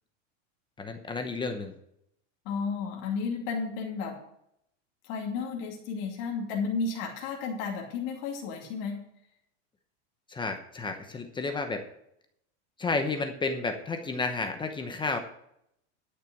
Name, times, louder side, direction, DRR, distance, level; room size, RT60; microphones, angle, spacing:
voice 1, 0.8-1.7 10.3-11.9 12.8-15.2, left 3 dB, 15° left, 6 dB, 0.9 m, -31 dB
voice 2, 2.5-4.2 5.0-9.0, left 5 dB, 55° left, 0 dB, 2.6 m, -32 dB
12.0 x 6.7 x 6.0 m, 0.76 s
supercardioid pair, 145°, 36 cm